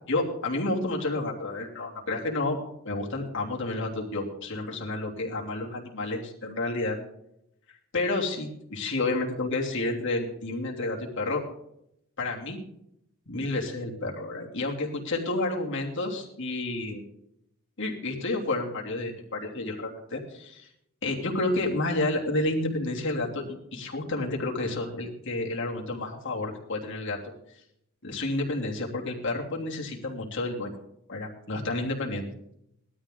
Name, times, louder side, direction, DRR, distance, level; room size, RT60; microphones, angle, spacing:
voice 1, 0.1-2.6 2.8-7.0 7.9-11.4 12.2-12.6 13.3-17.0 17.8-20.7 21.0-27.2 28.0-30.7 31.1-32.2, left 2 dB, 60° left, -2 dB, 3.0 m, -30 dB
18.5 x 12.5 x 3.8 m, 0.78 s
head